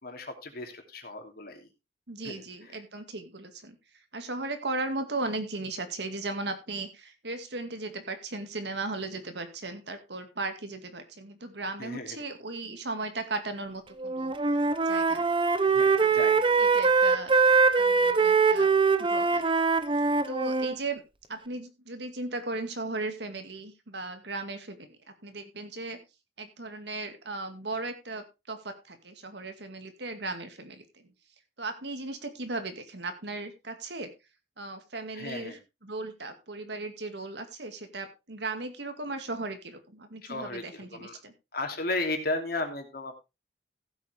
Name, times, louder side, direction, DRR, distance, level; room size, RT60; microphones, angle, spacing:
voice 1, 0.0-1.6 2.2-2.3 11.8-12.1 15.7-16.8 35.1-35.6 40.2-41.1 41.5-43.2, left 2 dB, 55° left, 4 dB, 2.8 m, -35 dB
voice 2, 2.1-3.8 4.1-14.3 14.9-15.4 16.0-16.2 16.6-17.3 17.8-18.7 19.0-19.4 20.3-21.0 21.3-26.0 26.4-31.1 31.6-34.1 34.6-41.3, right 3 dB, 65° right, 7 dB, 2.1 m, -37 dB
Wind instrument woodwind instrument, 14.0-20.8, right 4 dB, 30° right, 0.9 m, -23 dB
15.5 x 8.2 x 3.5 m, 0.26 s
head